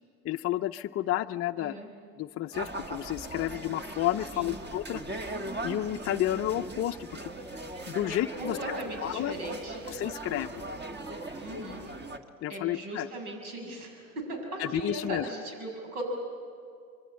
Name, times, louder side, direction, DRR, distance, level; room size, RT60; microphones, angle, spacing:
voice 1, 0.2-1.8 2.2-5.0 5.6-7.3 7.9-8.6 9.0-9.4 9.9-10.5 12.4-13.1 14.6-15.3, left 13 dB, 35° left, 5 dB, 0.5 m, -31 dB
voice 2, 1.6-1.9 4.3-4.6 8.0-9.8 11.3-11.8 12.5-16.1, right 1 dB, 80° right, 2 dB, 6.3 m, -38 dB
sound 1, 2.5-12.2, right 2 dB, 25° right, 1.7 m, -39 dB
25.5 x 23.5 x 7.6 m, 2.3 s
hypercardioid pair, 85°, 44 cm